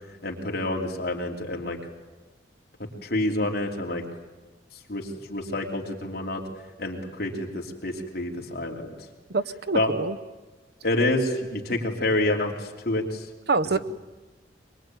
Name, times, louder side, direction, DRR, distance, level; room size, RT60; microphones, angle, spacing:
voice 1, 0.2-1.8 3.0-4.0 4.9-6.4 6.8-8.9 9.7-9.9 10.8-13.2, left 1 dB, 60° left, 0 dB, 3.3 m, -28 dB
voice 2, 9.3-10.2 13.5-13.8, right 3 dB, 60° right, 13 dB, 0.8 m, -25 dB
23.0 x 22.5 x 9.2 m, 1.2 s
head